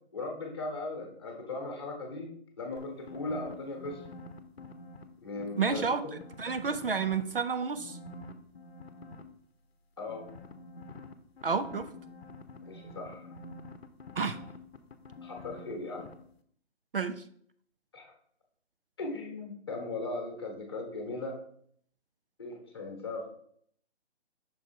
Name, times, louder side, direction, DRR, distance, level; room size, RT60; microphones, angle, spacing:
voice 1, 0.1-2.3 2.6-4.0 5.2-5.8 10.0-10.3 12.6-13.3 15.2-16.0 17.9-18.1 19.0-21.3 22.4-23.3, left 2 dB, 20° left, 1 dB, 1.1 m, -38 dB
sound 1, 2.8-5.0 5.4-7.4 7.7-9.2 10.1-15.7 16.0-16.1, left 2 dB, 65° left, 0.8 m, -47 dB
voice 2, 5.6-6.0 6.4-8.0 11.4-11.9 14.2-14.4 16.9-17.2, right 5 dB, 55° right, 10 dB, 0.5 m, -30 dB
6.1 x 4.1 x 4.3 m, 0.62 s
hypercardioid pair, 175°, 34 cm